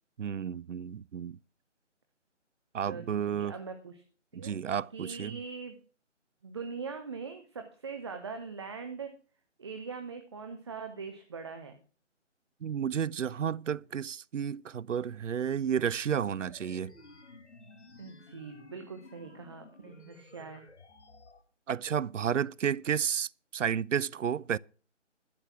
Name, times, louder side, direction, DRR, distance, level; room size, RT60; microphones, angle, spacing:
voice 1, 0.2-1.4 2.7-3.5 4.3-5.4 12.6-16.9 21.7-24.6, right 8 dB, 80° right, 0.5 m, -32 dB
voice 2, 2.9-4.0 4.4-4.5 4.9-5.7 6.4-9.1 9.6-11.8 18.0-20.6, right 5 dB, 20° right, 0.9 m, -42 dB
sound 1, 16.4-21.4, left 3 dB, 65° left, 2.7 m, -54 dB
12.0 x 7.9 x 6.0 m
figure-of-eight pair, 155°, 36 cm